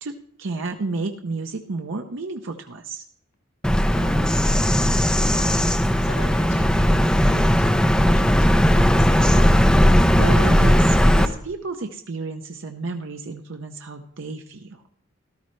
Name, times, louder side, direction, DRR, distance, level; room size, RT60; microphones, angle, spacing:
voice 1, 0.0-3.1 10.2-14.8, right 3 dB, 60° right, 5 dB, 0.7 m, -31 dB
Bird vocalization bird call bird song, 3.6-11.2, equal, 5° left, 0.5 m, -17 dB
voice 2, 3.9-8.5 8.7-9.5, left 1 dB, 90° left, 2 dB, 4.0 m, -40 dB
13.5 x 12.5 x 3.2 m, 0.70 s
head